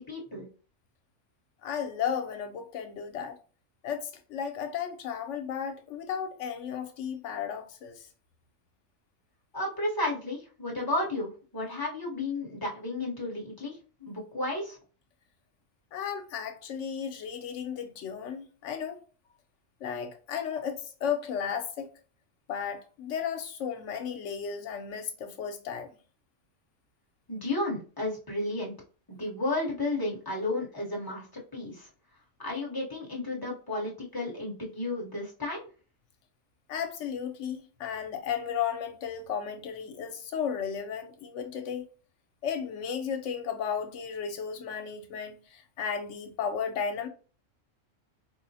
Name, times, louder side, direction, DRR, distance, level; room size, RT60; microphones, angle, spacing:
voice 1, 0.1-0.4 9.5-14.8 27.3-28.7 29.1-31.9 32.4-35.7, left 2 dB, 20° left, 0.9 m, -33 dB
voice 2, 1.6-3.4 3.8-8.1 15.9-19.0 19.8-21.9 22.5-26.0 36.7-41.9 42.4-47.1, left 7 dB, 75° left, 0.9 m, -34 dB
4.5 x 2.0 x 2.7 m
omnidirectional pair, 1.3 m